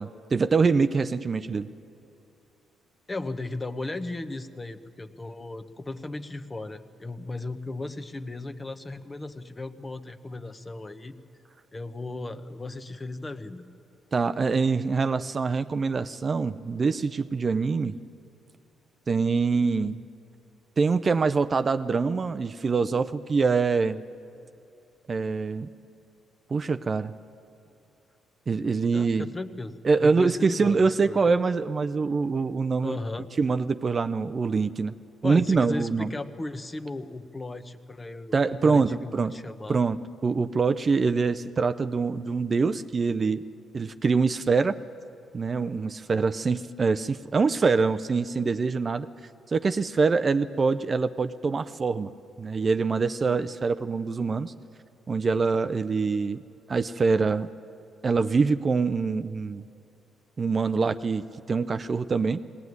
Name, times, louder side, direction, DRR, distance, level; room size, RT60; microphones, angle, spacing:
voice 1, 0.0-1.7 14.1-18.0 19.1-20.0 20.8-24.0 25.1-25.7 26.5-27.1 28.5-29.3 29.8-33.0 33.4-35.0 35.2-36.1 38.3-39.4 39.7-43.4 43.7-44.7 45.3-49.1 49.5-52.1 52.4-54.5 55.1-56.4 56.7-57.5 58.0-59.6 60.4-62.4, right 4 dB, 35° right, 11 dB, 0.5 m, -24 dB
voice 2, 3.1-11.1 11.7-13.6 28.9-31.4 32.8-33.3 35.2-39.8, left 2 dB, 25° left, 10 dB, 1.0 m, -36 dB
20.0 x 18.0 x 9.5 m, 2.7 s
cardioid pair, 90°, 0 cm